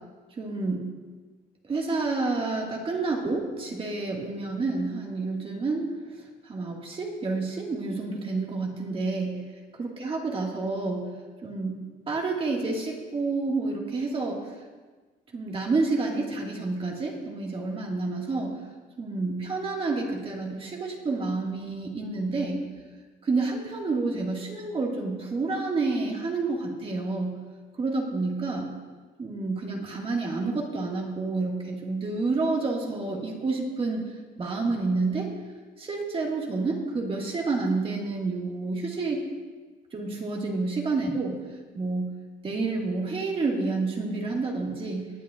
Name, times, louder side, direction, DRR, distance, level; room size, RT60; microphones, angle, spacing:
voice 1, 0.4-0.9 1.7-5.9 6.4-9.4 9.8-11.1 11.4-11.8 12.1-14.4 15.3-18.6 19.0-22.7 23.2-27.4 27.8-28.7 29.2-34.0 34.4-35.3 35.8-39.2 39.9-41.3 41.8-42.1 42.4-45.1, right 3 dB, 35° right, 0 dB, 1.9 m, -29 dB
19.5 x 9.3 x 2.5 m, 1.3 s
cardioid pair, 110°, 17 cm